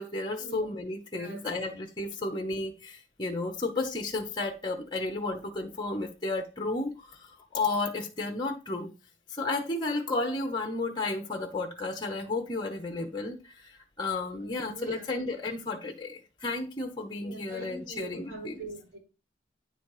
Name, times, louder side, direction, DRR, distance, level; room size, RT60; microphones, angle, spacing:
voice 1, 0.0-8.9 9.3-18.6, left 2 dB, 25° left, 0.8 m, -33 dB
voice 2, 14.4-15.1 17.2-19.0, right 4 dB, 85° right, 4.8 m, -43 dB
9.6 x 4.0 x 4.8 m
head